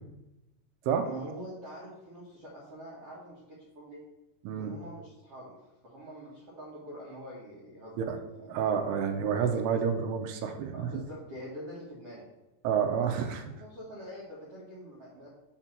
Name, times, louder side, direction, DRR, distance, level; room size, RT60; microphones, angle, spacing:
voice 1, 1.0-4.0 4.6-5.5 5.8-8.6 10.7-12.2 13.5-15.3, right 1 dB, 65° right, -6 dB, 1.5 m, -45 dB
voice 2, 8.5-10.9 12.6-13.4, right 7 dB, 85° right, 6 dB, 2.6 m, -29 dB
5.8 x 4.4 x 5.9 m, 0.98 s
omnidirectional pair, 4.8 m